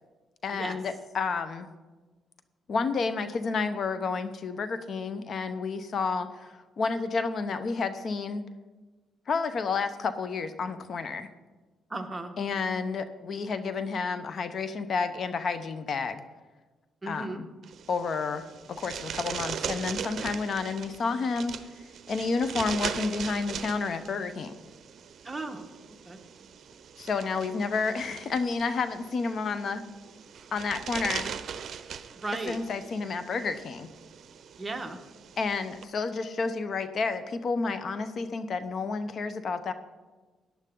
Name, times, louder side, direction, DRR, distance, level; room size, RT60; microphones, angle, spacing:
voice 1, 0.4-1.7 2.7-8.4 9.3-11.3 12.4-16.2 17.1-17.5 17.9-21.5 22.1-24.5 27.0-29.8 30.5-31.3 32.5-33.9 35.4-39.7, left 4 dB, 55° left, 11 dB, 0.8 m, -30 dB
voice 2, 11.9-12.3 17.0-17.4 25.2-26.2 32.2-32.6 34.6-35.0, right 2 dB, 20° right, 4 dB, 1.3 m, -36 dB
sound 1, 17.6-35.8, right 7 dB, 60° right, 0.7 m, -40 dB
14.5 x 10.5 x 3.8 m, 1.3 s
cardioid pair, 90°, 0 cm